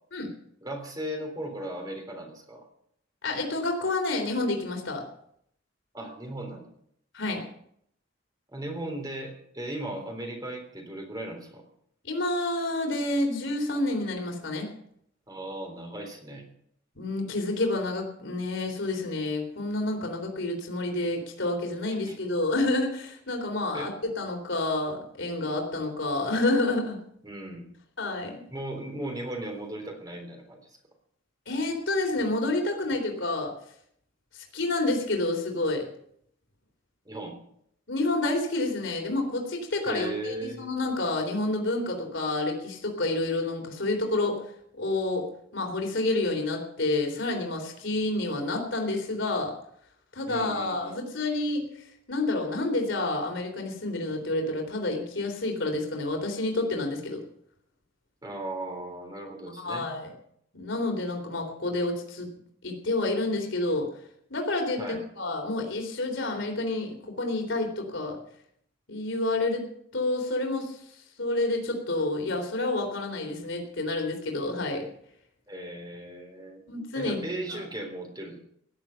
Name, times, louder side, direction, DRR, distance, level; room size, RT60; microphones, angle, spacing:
voice 1, 0.6-2.7 5.9-6.7 8.5-11.6 15.3-16.4 22.1-22.2 23.7-23.9 27.2-27.7 28.5-30.7 37.1-37.4 39.9-40.7 50.3-51.0 58.2-59.9 64.8-65.0 75.5-76.6 76.9-78.4, right 1 dB, 20° right, 3 dB, 3.6 m, -37 dB
voice 2, 3.2-5.0 7.1-7.4 12.0-14.7 17.0-27.0 28.0-28.4 31.5-33.5 34.3-35.9 37.9-44.4 44.7-49.5 50.1-57.2 59.6-60.1 60.5-62.3 62.6-63.9 64.3-68.2 68.9-69.7 69.9-70.8 71.2-74.9 76.7-77.2, left 2 dB, 70° left, 2 dB, 3.6 m, -29 dB
16.5 x 11.0 x 5.8 m, 0.69 s
head